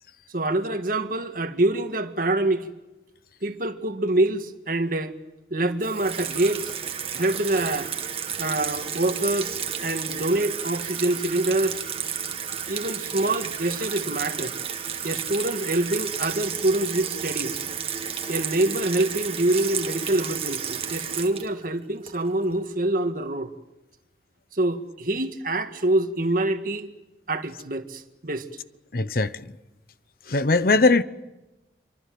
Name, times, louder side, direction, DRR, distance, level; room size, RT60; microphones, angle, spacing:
voice 1, 0.3-2.7 3.4-5.1 5.5-6.7 7.1-7.9 8.4-9.6 9.8-11.8 12.7-14.5 15.0-17.6 18.3-23.5 24.5-26.9 27.3-28.5, right 2 dB, 50° right, 1.9 m, -25 dB
Water tap faucet / Sink (filling or washing), 5.8-22.5, right 7 dB, 35° right, 1.9 m, -32 dB
voice 2, 28.9-29.3 30.3-31.0, left 3 dB, 55° left, 1.0 m, -19 dB
27.0 x 24.5 x 7.8 m
head